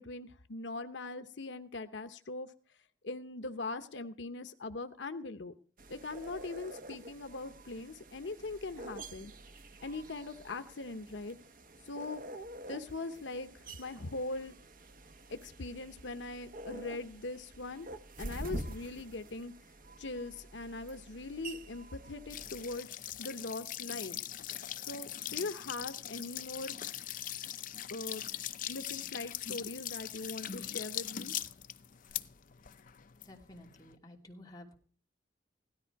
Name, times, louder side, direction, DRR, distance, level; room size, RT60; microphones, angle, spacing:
voice 1, 0.0-2.5 3.0-5.5 5.9-9.3 9.8-11.4 11.9-12.2 12.7-14.5 15.3-17.9 18.2-19.5 20.0-24.2 24.9-26.7 27.9-28.2 28.7-31.3, left 3 dB, 85° left, 9 dB, 0.9 m, -41 dB
sound 1, 5.8-22.8, right 1 dB, 50° right, 1.1 m, -48 dB
sound 2, 22.3-33.9, left 11 dB, 50° left, 0.6 m, -41 dB
voice 2, 33.2-34.8, left 1 dB, 20° left, 0 dB, 2.9 m, -52 dB
16.5 x 13.0 x 4.6 m, 0.43 s
head